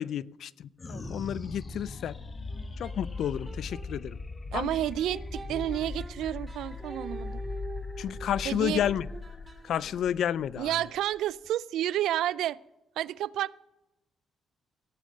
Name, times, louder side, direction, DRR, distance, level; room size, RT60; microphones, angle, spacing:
voice 1, 0.0-2.2 2.8-4.2 4.5-4.7 8.0-9.1 9.6-10.7, left 10 dB, 70° left, 0.4 m, -31 dB
sound 1, 0.8-11.5, left 3 dB, 30° left, 1.3 m, -40 dB
sound 2, 2.5-3.9 4.7-10.2, right 3 dB, 30° right, 2.6 m, -46 dB
voice 2, 4.5-7.4 8.4-8.8 10.6-12.6 13.0-13.5, right 12 dB, 80° right, 0.4 m, -30 dB
17.5 x 9.0 x 6.6 m
cardioid pair, 90°, 0 cm